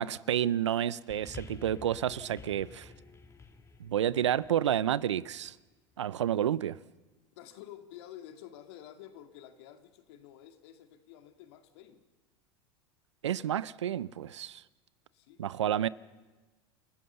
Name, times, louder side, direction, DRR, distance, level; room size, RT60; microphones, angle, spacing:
voice 1, 0.0-2.9 3.8-5.6 6.0-6.8 13.2-14.6 15.4-15.9, right 10 dB, 90° right, 0.5 m, -30 dB
sound 1, 1.1-5.6 6.5-6.6, left 4 dB, 20° left, 2.4 m, -50 dB
voice 2, 7.4-12.0 15.1-15.9, left 11 dB, 65° left, 2.2 m, -50 dB
29.0 x 14.5 x 6.9 m
hypercardioid pair, 95°, 15 cm